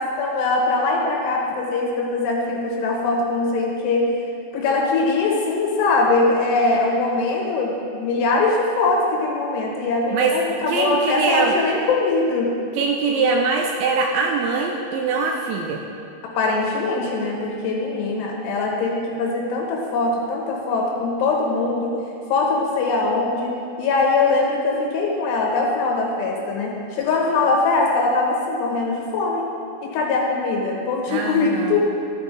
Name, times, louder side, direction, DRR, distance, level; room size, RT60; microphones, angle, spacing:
voice 1, 0.2-4.1 4.5-12.5 16.4-21.9 22.3-23.5 23.8-29.5 29.8-31.8, left 3 dB, 75° left, -1 dB, 2.8 m, -22 dB
voice 2, 10.1-10.4 10.7-11.6 12.7-15.8 31.1-31.8, right 4 dB, 80° right, 1 dB, 2.7 m, -22 dB
14.0 x 8.5 x 3.1 m, 2.7 s
omnidirectional pair, 5.6 m